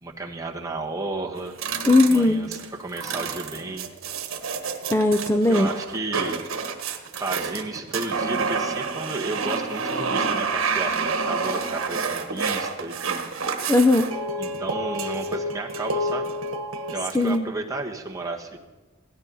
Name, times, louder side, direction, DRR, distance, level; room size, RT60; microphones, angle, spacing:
voice 1, 0.0-1.6 2.0-3.9 5.5-6.5 7.2-13.3 14.4-16.3 16.9-18.6, right 2 dB, 15° right, 1 dB, 1.4 m, -33 dB
sound 1, 1.3-17.4, right 4 dB, 70° right, 1.4 m, -29 dB
voice 2, 1.9-2.5 4.9-5.7 13.7-14.1 17.1-17.5, left 2 dB, 15° left, 6 dB, 0.6 m, -18 dB
17.0 x 13.0 x 5.5 m, 1.2 s
head